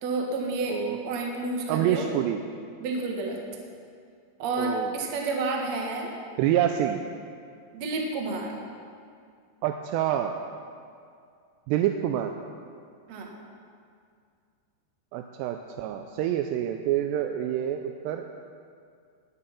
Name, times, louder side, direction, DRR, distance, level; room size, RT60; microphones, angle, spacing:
voice 1, 0.0-2.1 2.8-3.4 4.4-6.1 7.7-8.5 13.1-13.3, right 3 dB, 60° right, 0 dB, 1.9 m, -30 dB
voice 2, 1.7-2.4 4.6-4.9 6.4-7.0 9.6-10.4 11.7-12.3 15.1-18.3, right 11 dB, 85° right, 5 dB, 2.6 m, -27 dB
20.5 x 7.5 x 5.9 m, 2.2 s
omnidirectional pair, 5.3 m